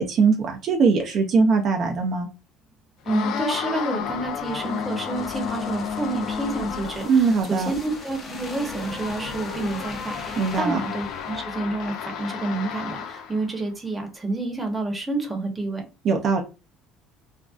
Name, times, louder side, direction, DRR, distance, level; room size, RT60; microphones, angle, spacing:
voice 1, 0.0-2.3 7.1-7.7 10.4-10.8 16.0-16.4, right 5 dB, 50° right, 0.5 m, -21 dB
voice 2, 3.0-15.8, right 2 dB, 15° right, 0.8 m, -29 dB
sound 1, 3.1-13.5, left 7 dB, 70° left, 0.3 m, -32 dB
sound 2, 4.0-12.3 12.7-12.8, left 2 dB, 30° left, 0.7 m, -40 dB
2.5 x 2.1 x 2.3 m
supercardioid pair, 105°, 0 cm